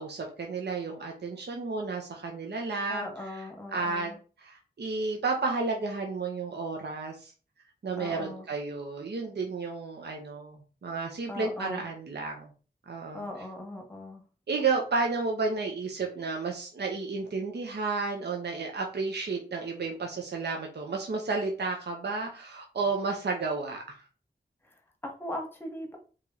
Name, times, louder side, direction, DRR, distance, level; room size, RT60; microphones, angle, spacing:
voice 1, 0.0-3.4 3.7-4.1 4.4-7.3 7.8-12.5 12.9-13.2 14.5-24.0, right 4 dB, 65° right, 1 dB, 0.7 m, -32 dB
voice 2, 2.9-4.2 8.0-8.5 11.3-11.9 13.1-14.2 24.6-26.0, left 1 dB, 10° left, 2 dB, 1.1 m, -39 dB
3.0 x 2.8 x 3.7 m, 0.37 s
wide cardioid pair, 70°, 19 cm